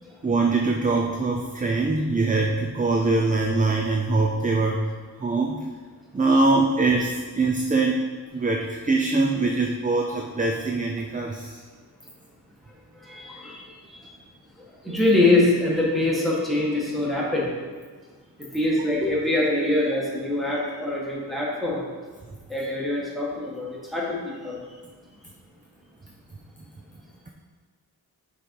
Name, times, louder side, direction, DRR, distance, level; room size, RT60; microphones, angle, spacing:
voice 1, 0.2-4.8 5.2-5.6 6.1-8.0 8.3-11.6, right 3 dB, 20° right, 1 dB, 0.5 m, -23 dB
voice 2, 12.9-14.0 14.6-17.5 18.4-21.8 22.5-24.6, left 2 dB, ahead, -5 dB, 1.7 m, -24 dB
8.2 x 3.9 x 4.7 m, 1.5 s
wide cardioid pair, 120°, 38 cm